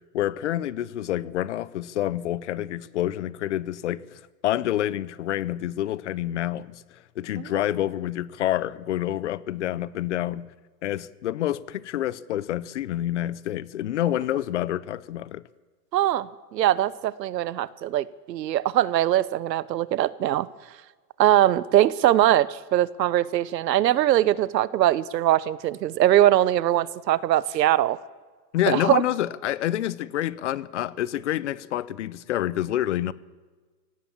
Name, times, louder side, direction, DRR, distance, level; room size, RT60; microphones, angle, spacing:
voice 1, 0.1-6.8 7.2-10.5 10.8-15.4 28.5-33.1, left 12 dB, 45° left, 0.7 m, -28 dB
voice 2, 15.9-20.5 21.2-28.0 28.7-29.0, right 13 dB, 85° right, 1.0 m, -22 dB
24.0 x 17.5 x 7.3 m
supercardioid pair, 175°, 49 cm